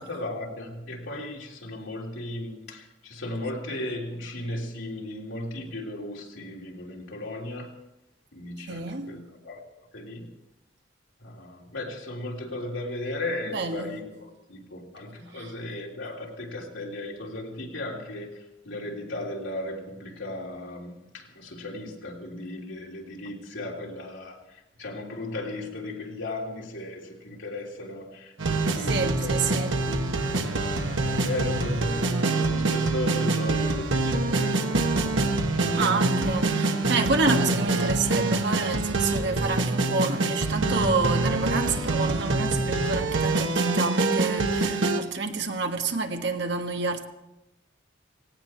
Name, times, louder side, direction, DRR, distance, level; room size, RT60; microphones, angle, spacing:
voice 1, 0.0-7.7 8.3-9.6 9.9-10.3 11.2-18.4 18.6-24.4 24.8-30.1 30.7-34.8 35.5-36.9 37.2-37.3, left 1 dB, 85° left, 3.5 m, -36 dB
voice 2, 8.7-9.1 13.5-14.0 15.4-15.5 28.8-29.8 35.8-47.0, right 3 dB, 65° right, 1.5 m, -28 dB
random boss fight music, 28.4-45.0, right 2 dB, 80° right, 1.6 m, -25 dB
18.0 x 17.5 x 4.5 m
head